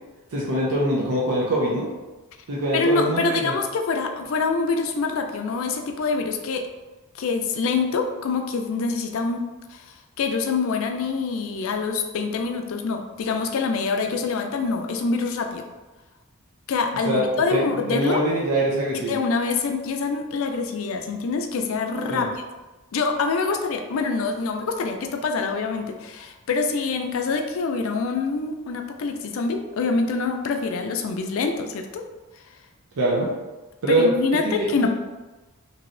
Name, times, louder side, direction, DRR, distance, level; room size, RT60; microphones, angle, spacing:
voice 1, 0.3-1.9 2.5-3.5 17.0-17.2 17.5-19.2 22.1-22.3 33.0-33.3 33.8-34.1 34.4-34.9, right 1 dB, 75° right, -4 dB, 0.5 m, -23 dB
voice 2, 2.7-6.7 7.2-9.4 9.7-15.7 16.7-18.2 18.9-22.4 22.9-32.0 33.9-34.9, left 4 dB, 65° left, 5 dB, 0.4 m, -25 dB
3.0 x 2.7 x 2.5 m, 1.1 s
head